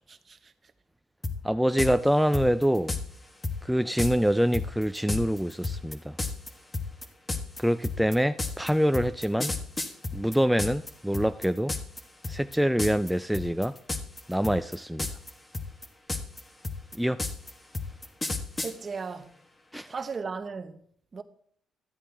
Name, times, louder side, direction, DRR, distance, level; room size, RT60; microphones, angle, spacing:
sound 1, 1.2-1.4 1.8-1.9 2.3-3.0 3.4-3.6 4.0-4.1 4.5-10.9 11.1-12.0 12.2-12.5 12.8-13.1 13.3-14.2 14.4-15.3 15.5-18.7, left 3 dB, 20° left, 1.2 m, -31 dB
voice 1, 1.4-2.9 3.6-6.2 7.6-9.5 10.1-11.7 12.3-13.8 14.3-15.1 17.0-17.2 19.7-19.9, equal, ahead, 0.3 m, -25 dB
voice 2, 18.6-19.3 19.9-20.8 21.1-21.2, right 5 dB, 40° right, 0.9 m, -36 dB
13.0 x 8.5 x 3.4 m
cardioid pair, 90°, 0 cm